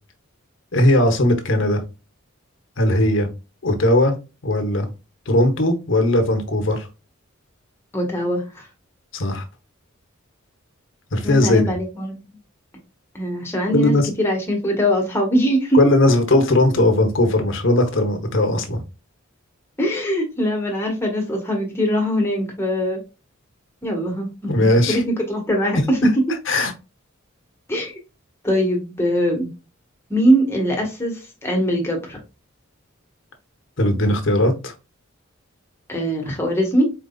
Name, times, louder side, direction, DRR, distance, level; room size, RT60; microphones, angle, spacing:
voice 1, 0.7-1.8 2.8-3.3 3.6-4.1 4.4-4.9 5.3-6.9 9.1-9.4 11.1-11.7 13.7-14.1 15.7-18.8 24.5-25.0 25.7-25.8 26.5-26.7 33.8-34.7, left 1 dB, 60° left, 1.1 m, -18 dB
voice 2, 7.9-8.7 11.2-12.2 13.1-15.8 19.8-23.0 23.8-26.1 27.7-27.9 28.4-29.5 30.1-32.2 35.9-36.9, equal, 10° left, 1.5 m, -22 dB
4.5 x 3.9 x 2.3 m
head